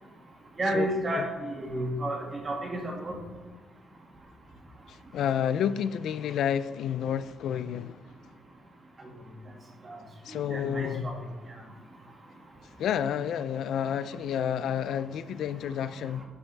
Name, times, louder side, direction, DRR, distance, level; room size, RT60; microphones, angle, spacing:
voice 1, 0.6-2.2 2.4-3.2 9.9-10.0 10.5-11.1, right 1 dB, 30° right, 1.9 m, -30 dB
voice 2, 5.1-8.0 10.3-11.1 12.8-16.2, left 9 dB, 70° left, 0.3 m, -30 dB
11.5 x 7.2 x 3.4 m
cardioid pair, 160°, 0 cm